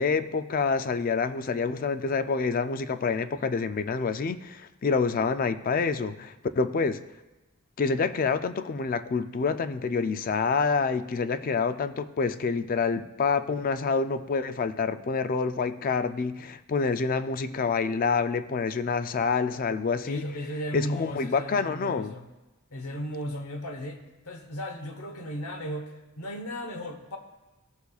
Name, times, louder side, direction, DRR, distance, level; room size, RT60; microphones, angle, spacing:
voice 1, 0.0-7.0 7.8-20.3 20.7-22.1, left 5 dB, 40° left, 11 dB, 0.3 m, -27 dB
voice 2, 20.0-22.2 22.7-27.2, equal, 80° left, 6 dB, 1.0 m, -35 dB
14.5 x 6.9 x 2.3 m, 1.1 s
head